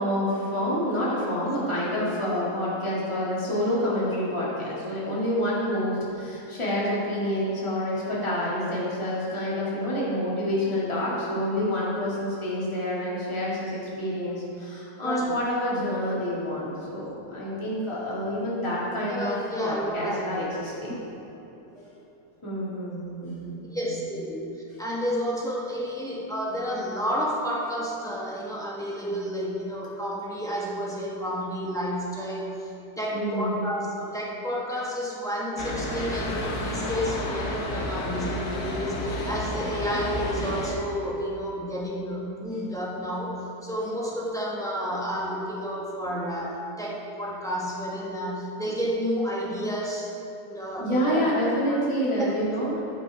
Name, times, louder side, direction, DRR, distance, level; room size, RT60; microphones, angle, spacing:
voice 1, 0.0-21.0 22.4-23.9 33.1-33.7 50.8-52.8, equal, 15° left, -8 dB, 2.2 m, -28 dB
voice 2, 19.1-20.3 21.7-21.8 23.7-24.4 24.8-50.2 50.4-51.2 51.7-51.8 52.1-52.3, equal, ahead, -4 dB, 1.1 m, -31 dB
sound 1, 35.6-40.7, left 1 dB, 70° left, 1.7 m, -31 dB
11.0 x 6.1 x 4.9 m, 3.0 s
omnidirectional pair, 1.7 m